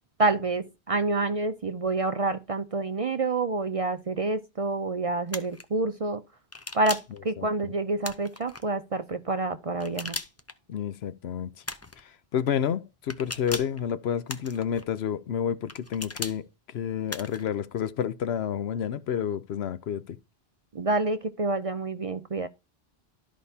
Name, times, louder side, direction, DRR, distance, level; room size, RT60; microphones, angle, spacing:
voice 1, 0.2-6.2 6.7-10.2 20.7-22.5, right 3 dB, 40° right, 0.5 m, -28 dB
sound 1, 5.3-5.6 6.5-7.2 8.0-8.6 9.8-10.5 11.6-12.0 13.1-13.8 14.3-14.8 15.7-16.4 17.1-17.5, left 2 dB, 20° left, 0.5 m, -37 dB
voice 2, 10.7-11.5 12.0-20.2, left 8 dB, 75° left, 0.9 m, -30 dB
13.0 x 5.1 x 2.7 m
omnidirectional pair, 1.1 m